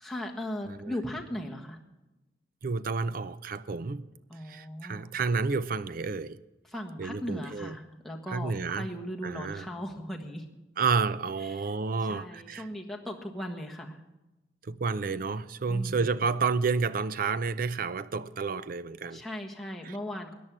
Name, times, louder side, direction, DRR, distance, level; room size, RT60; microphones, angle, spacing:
voice 1, 0.0-1.8 4.3-5.1 6.7-10.4 11.4-11.7 12.1-14.0 15.7-16.1 19.1-20.3, equal, ahead, 1.5 m, -38 dB
voice 2, 0.7-1.0 2.6-4.1 4.5-6.4 7.0-7.7 8.3-8.9 9.2-9.7 10.8-12.7 14.6-19.2 19.8-19.9, right 4 dB, 50° right, 0.5 m, -30 dB
14.0 x 10.0 x 6.1 m
head